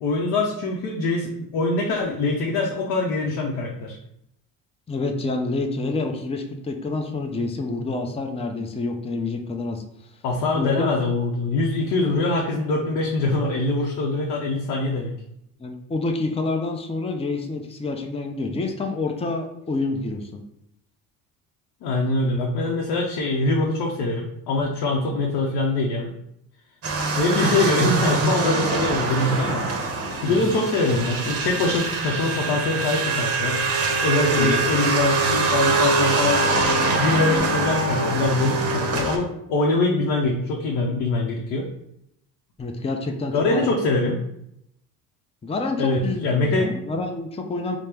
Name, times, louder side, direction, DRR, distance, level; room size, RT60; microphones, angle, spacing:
voice 1, 0.0-4.0 10.2-15.1 21.8-26.1 27.2-29.9 30.2-33.6 34.0-36.4 36.9-41.7 43.3-44.2 45.8-46.7, left 2 dB, 70° left, -1 dB, 0.7 m, -23 dB
voice 2, 4.9-9.8 10.5-10.9 15.6-20.4 30.2-30.3 34.4-34.6 42.6-43.6 45.4-47.8, left 3 dB, 15° left, 3 dB, 0.5 m, -28 dB
sound 1, 26.8-39.2, right 3 dB, 35° right, 0.8 m, -23 dB
4.3 x 2.1 x 3.3 m, 0.77 s
supercardioid pair, 70°, 40 cm